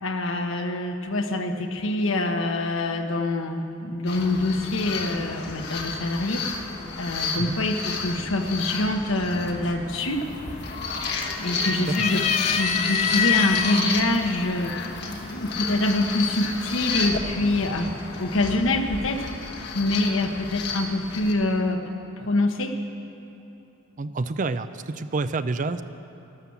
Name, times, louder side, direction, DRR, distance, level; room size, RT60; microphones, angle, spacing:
voice 1, 0.0-6.4 6.9-10.2 11.4-14.7 15.0-19.3 19.7-21.8 22.2-22.7, left 2 dB, 75° left, 5 dB, 1.1 m, -25 dB
sound 1, 4.1-21.3, left 4 dB, 55° left, 1.2 m, -31 dB
sound 2, 10.0-10.4 10.8-11.5 11.9-13.8 14.7-14.8 16.0-16.5, left 9 dB, 35° left, 0.3 m, -25 dB
voice 2, 24.0-25.8, right 3 dB, 40° right, 12 dB, 0.5 m, -28 dB
12.5 x 12.5 x 7.2 m, 2.9 s
head